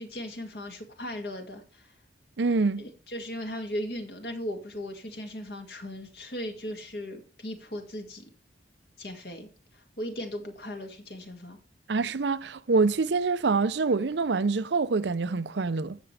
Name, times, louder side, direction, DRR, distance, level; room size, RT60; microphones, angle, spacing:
voice 1, 0.0-1.9 2.8-8.2 9.0-11.6, equal, 60° left, 2.1 m, -37 dB
voice 2, 2.4-2.9 11.9-16.0, right 4 dB, 80° right, 0.6 m, -25 dB
16.0 x 6.1 x 3.3 m
head